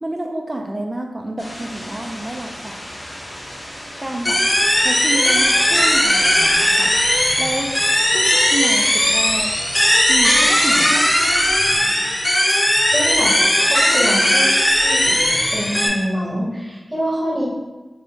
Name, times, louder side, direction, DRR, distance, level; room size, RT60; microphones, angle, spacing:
voice 1, 0.0-2.8 4.0-4.4 4.8-7.0 7.4-7.7 8.1-9.5 10.1-11.1, right 1 dB, 25° right, 2 dB, 0.4 m, -29 dB
sound 1, 1.4-10.0, equal, 65° left, 1.4 m, -36 dB
sound 2, 4.2-15.9, left 1 dB, 20° left, 0.6 m, -17 dB
voice 2, 12.9-13.3 13.6-14.5 14.8-17.4, equal, 5° right, -6 dB, 1.0 m, -25 dB
3.4 x 2.6 x 4.0 m, 1.2 s
wide cardioid pair, 90°, 0 cm